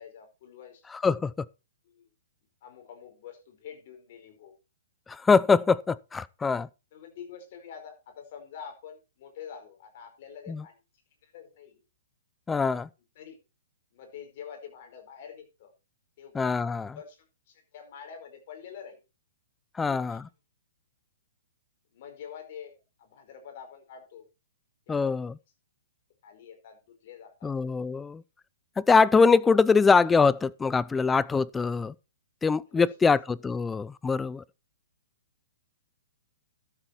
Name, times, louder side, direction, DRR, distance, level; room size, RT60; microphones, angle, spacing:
voice 1, 0.0-0.9 1.8-2.0 2.6-4.5 6.9-10.7 11.2-11.8 13.1-13.4 13.9-15.7 16.2-16.3 16.9-19.0 19.8-20.2 21.9-24.3 24.9-25.2 26.2-27.5 32.7-33.1, left 8 dB, 50° left, 4.8 m, -46 dB
voice 2, 5.1-6.7 10.5-10.6 12.5-12.9 16.3-17.0 19.8-20.2 24.9-25.3 27.4-28.2 28.8-31.9 32.4-34.4, left 4 dB, 10° left, 0.5 m, -23 dB
12.5 x 8.0 x 4.5 m
hypercardioid pair, 125°, 0 cm